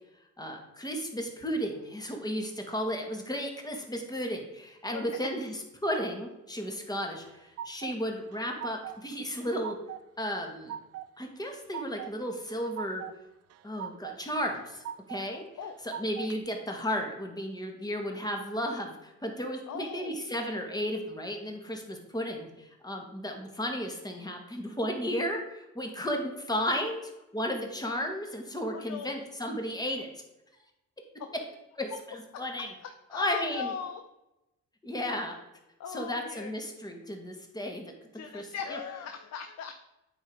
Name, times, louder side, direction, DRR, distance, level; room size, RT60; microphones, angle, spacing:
voice 1, 0.4-9.7 10.2-10.7 11.2-13.0 13.6-14.8 15.1-15.4 15.8-30.1 31.7-32.7 33.1-33.7 34.8-35.4 35.9-37.9 38.3-38.8, equal, 15° left, 2 dB, 1.6 m, -34 dB
sound 1, 7.0-8.0 8.3-9.0 9.3-10.0 10.4-11.1 11.4-12.1 12.5-13.2 13.5-14.2 14.5-15.2 15.6-16.4, right 10 dB, 55° right, 0.4 m, -41 dB
voice 2, 19.7-20.2 28.7-29.2 31.2-31.4 33.1-34.0 35.8-36.5 38.1-39.8, left 7 dB, 60° left, 7 dB, 0.6 m, -38 dB
8.8 x 3.9 x 4.8 m, 0.94 s
cardioid pair, 90°, 30 cm